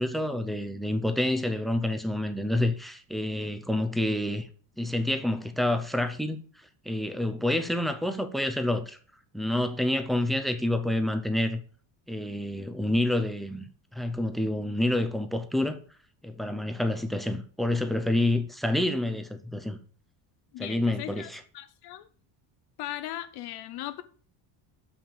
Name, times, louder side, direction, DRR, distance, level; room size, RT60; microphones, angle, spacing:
voice 1, 0.0-4.5 4.8-6.4 6.9-9.0 9.3-11.6 12.1-13.7 13.9-15.8 16.2-19.8 20.6-21.4, left 1 dB, ahead, 0.4 m, -28 dB
voice 2, 20.5-22.1 22.8-24.0, left 14 dB, 50° left, 0.6 m, -38 dB
7.2 x 5.9 x 6.5 m
cardioid pair, 165°, 49 cm